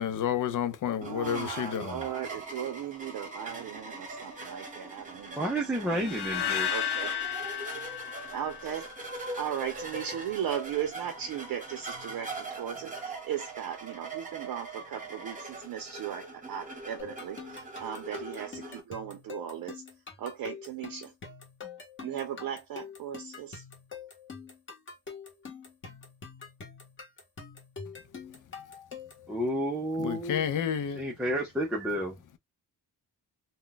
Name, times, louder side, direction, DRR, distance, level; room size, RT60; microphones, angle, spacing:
voice 1, 0.0-2.0 30.0-31.0, left 9 dB, 55° left, 0.5 m, -30 dB
sound 1, 1.0-18.8, right 3 dB, 20° right, 0.8 m, -42 dB
voice 2, 1.0-5.5 5.8-6.2 6.7-7.2 8.3-8.9 9.4-19.8 20.2-21.1 22.0-23.6, right 9 dB, 65° right, 0.6 m, -37 dB
voice 3, 5.4-6.7 29.3-30.4 30.9-32.2, equal, ahead, 0.4 m, -30 dB
sound 2, 6.0-9.1, left 10 dB, 85° left, 0.8 m, -33 dB
sound 3, 17.0-29.3, left 5 dB, 30° left, 0.9 m, -45 dB
2.3 x 2.1 x 3.8 m
wide cardioid pair, 165°, 38 cm